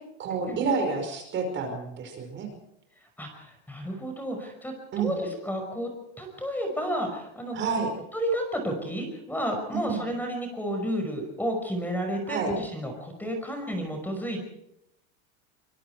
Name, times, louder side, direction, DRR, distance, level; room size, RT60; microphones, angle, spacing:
voice 1, 0.2-2.5 4.9-5.1 7.5-7.9 9.7-10.0 12.3-12.5, right 5 dB, 30° right, 5 dB, 5.2 m, -29 dB
voice 2, 3.2-5.9 6.2-7.6 8.1-14.4, equal, 5° left, 4 dB, 5.5 m, -31 dB
24.5 x 22.5 x 4.8 m, 0.83 s
supercardioid pair, 140°, 35 cm